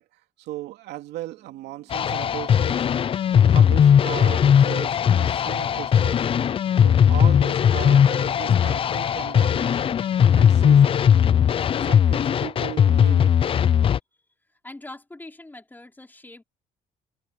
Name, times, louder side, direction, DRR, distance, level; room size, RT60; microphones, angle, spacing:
voice 1, 0.0-2.9 3.4-6.3 6.7-9.9 10.3-11.1 11.7-13.3, right 15 dB, 85° right, 2.8 m, -37 dB
sound 1, 1.4-11.4, right 7 dB, 45° right, 6.2 m, -59 dB
sound 2, 1.9-14.0, left 8 dB, 35° left, 0.4 m, -18 dB
voice 2, 14.6-16.4, left 2 dB, 10° left, 3.6 m, -42 dB
cardioid pair, 110°, 17 cm